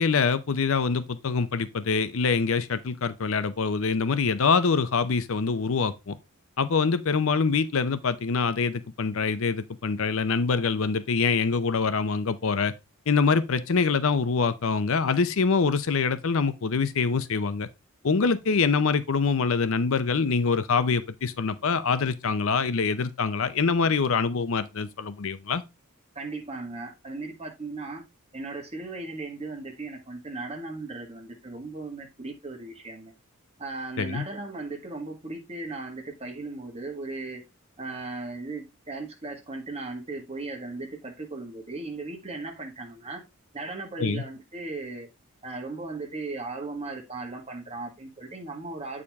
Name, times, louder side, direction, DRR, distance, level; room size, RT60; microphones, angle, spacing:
voice 1, 0.0-6.2 6.6-12.7 13.1-17.7 18.0-25.6 34.0-34.2 44.0-44.2, left 5 dB, 60° left, 0.6 m, -25 dB
voice 2, 26.1-28.0 28.3-33.1 33.6-37.4 37.8-43.2 43.5-45.1 45.4-49.0, right 3 dB, 30° right, 1.6 m, -37 dB
8.5 x 4.9 x 3.5 m
head